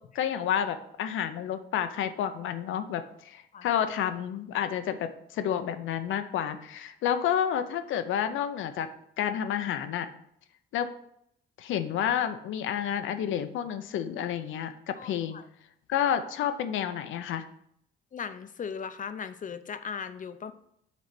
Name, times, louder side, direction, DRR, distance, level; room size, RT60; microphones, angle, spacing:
voice 1, 0.1-8.9 9.2-10.1 10.7-10.9 11.6-15.4 15.9-17.5, left 9 dB, 80° left, 9 dB, 0.7 m, -30 dB
voice 2, 15.0-15.4 18.1-20.5, left 6 dB, 40° left, 11 dB, 0.6 m, -38 dB
6.0 x 4.3 x 5.9 m, 0.73 s
cardioid pair, 90°, 20 cm